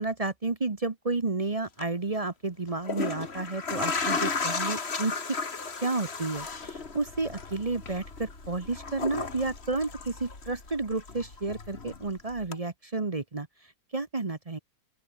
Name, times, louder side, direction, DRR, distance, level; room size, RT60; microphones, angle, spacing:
voice 1, 0.0-5.2 5.8-13.5 13.9-14.6, right 3 dB, 25° right, 0.8 m, -31 dB
sound 1, 1.6-1.8 2.7-10.7 11.0-12.1 12.5-12.6, left 4 dB, 30° left, 2.0 m, -34 dB
sound 2, 6.4-12.5, left 3 dB, 45° left, 5.5 m, -51 dB
open air
omnidirectional pair, 2.3 m